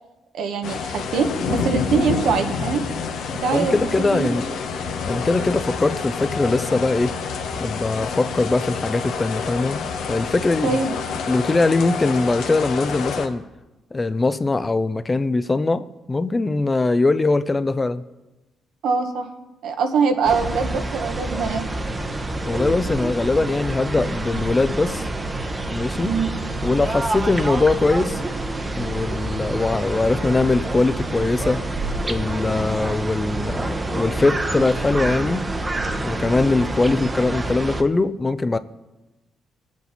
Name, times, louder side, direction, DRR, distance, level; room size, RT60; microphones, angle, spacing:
voice 1, 0.3-2.8 3.4-4.3 10.6-10.9 18.8-19.3 19.6-21.6 26.0-26.3, right 5 dB, 80° right, 1.3 m, -23 dB
sound 1, 0.6-13.3, left 5 dB, 80° left, 1.2 m, -28 dB
voice 2, 3.5-4.5 5.1-7.2 7.6-10.8 11.3-13.4 13.9-18.0 22.4-25.1 25.7-26.2 26.6-28.2 28.7-31.7 32.0-35.5 36.0-38.6, left 3 dB, 20° left, 0.5 m, -21 dB
sound 2, 20.2-37.8, right 2 dB, 20° right, 1.0 m, -27 dB
20.0 x 8.3 x 4.2 m
cardioid pair, 90°, 0 cm